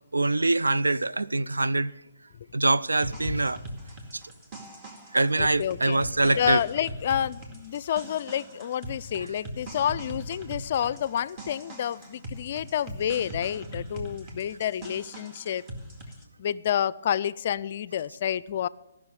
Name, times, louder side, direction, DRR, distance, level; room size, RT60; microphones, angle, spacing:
voice 1, 0.1-1.9 2.5-3.6 4.1-4.2 5.1-6.6, right 2 dB, 85° right, 0.4 m, -24 dB
sound 1, 2.9-16.2, right 1 dB, 25° right, 2.2 m, -41 dB
voice 2, 5.4-6.0 6.4-15.6 16.4-18.7, left 10 dB, 45° left, 0.4 m, -29 dB
13.5 x 6.2 x 8.9 m
figure-of-eight pair, 135°, 0 cm